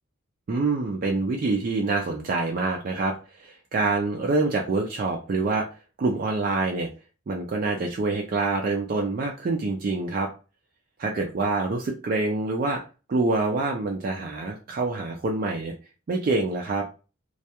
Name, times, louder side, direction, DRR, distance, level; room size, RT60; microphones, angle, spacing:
voice 1, 0.5-3.1 3.4-5.7 6.0-6.9 7.3-10.3 11.0-12.8 13.1-15.7 16.1-16.9, right 3 dB, 45° right, 1 dB, 0.3 m, -26 dB
2.2 x 2.1 x 2.8 m, 0.33 s
head